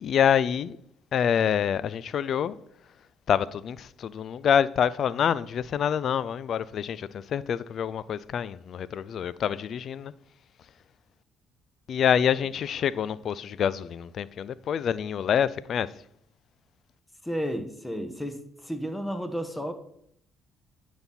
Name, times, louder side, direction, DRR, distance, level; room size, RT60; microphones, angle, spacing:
voice 1, 0.0-0.8 1.1-2.6 3.3-10.1 11.9-15.9, left 8 dB, 55° left, 0.4 m, -26 dB
voice 2, 17.2-19.7, equal, 10° left, 1.3 m, -32 dB
9.5 x 4.1 x 6.0 m
hypercardioid pair, 50°, 0 cm